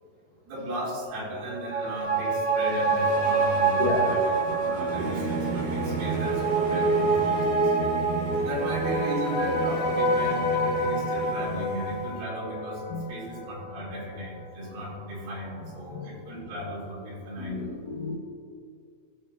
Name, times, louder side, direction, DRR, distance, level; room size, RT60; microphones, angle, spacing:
voice 1, 0.5-12.8 13.1-17.6, equal, 65° right, -5 dB, 3.7 m, -35 dB
sound 1, 1.4-14.2 14.6-14.7, right 2 dB, 45° right, 3.0 m, -27 dB
Singing / Musical instrument, 2.6-12.1, right 4 dB, 90° right, 1.8 m, -34 dB
sound 2, 3.0-7.4, left 2 dB, 50° left, 1.8 m, -42 dB
voice 2, 3.8-4.3 7.8-8.3 12.9-13.4 15.6-16.2 16.5-16.6 17.2-18.2, left 2 dB, 75° left, -4 dB, 1.8 m, -33 dB
16.0 x 6.4 x 2.3 m, 2.1 s
omnidirectional pair, 4.9 m